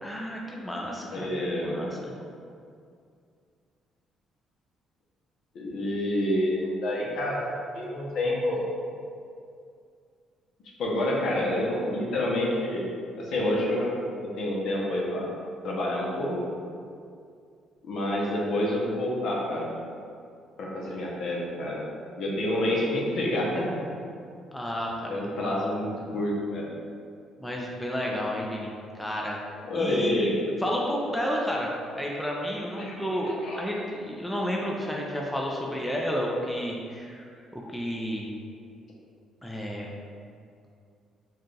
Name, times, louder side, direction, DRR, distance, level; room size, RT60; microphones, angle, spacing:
voice 1, 0.0-2.1 24.5-25.7 27.4-29.4 29.7-31.7 31.9-33.3 33.6-38.3 39.4-39.9, equal, 5° left, -2 dB, 0.4 m, -31 dB
voice 2, 1.1-1.8 5.5-7.4 7.7-8.6 10.8-12.9 13.2-13.9 14.4-15.2 15.6-16.6 17.8-19.7 20.6-21.8 22.2-23.7 25.1-26.6 29.7-30.4 32.8-33.6, left 1 dB, 65° left, -4 dB, 0.8 m, -28 dB
4.4 x 2.4 x 3.2 m, 2.3 s
cardioid pair, 115°, 0 cm